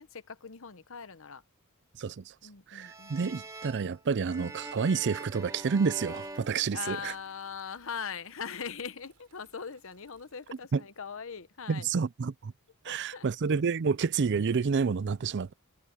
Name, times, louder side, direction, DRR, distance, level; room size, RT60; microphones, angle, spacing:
voice 1, 0.0-1.4 2.4-3.3 4.4-4.5 6.7-11.9 12.9-13.3, left 6 dB, 65° left, 1.0 m, -41 dB
voice 2, 2.0-2.3 2.7-7.1 10.7-10.8 11.7-12.5 12.8-15.5, right 5 dB, 55° right, 0.4 m, -29 dB
sound 1, 2.8-7.4, right 2 dB, 15° right, 1.6 m, -44 dB
sound 2, 6.0-11.2, right 6 dB, 80° right, 5.4 m, -67 dB
head